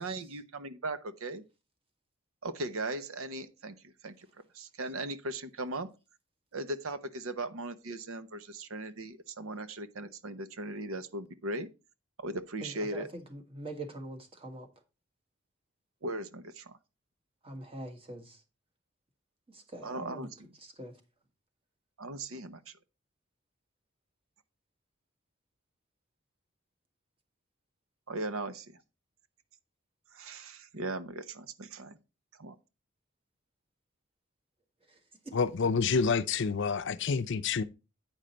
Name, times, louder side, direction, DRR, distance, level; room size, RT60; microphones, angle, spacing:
voice 1, 0.0-1.4 2.4-4.3 4.5-5.9 6.5-11.7 12.2-13.1 16.0-16.8 19.8-20.3 22.0-22.7 28.1-28.8 30.1-32.0 32.4-32.6, right 2 dB, 85° right, 0.8 m, -38 dB
voice 2, 12.6-14.7 17.4-18.4 19.5-20.3 20.6-20.9 34.9-35.0 35.2-35.3, right 1 dB, 30° right, 1.6 m, -43 dB
voice 3, 35.3-37.6, left 5 dB, 60° left, 0.5 m, -28 dB
9.1 x 5.2 x 4.3 m
head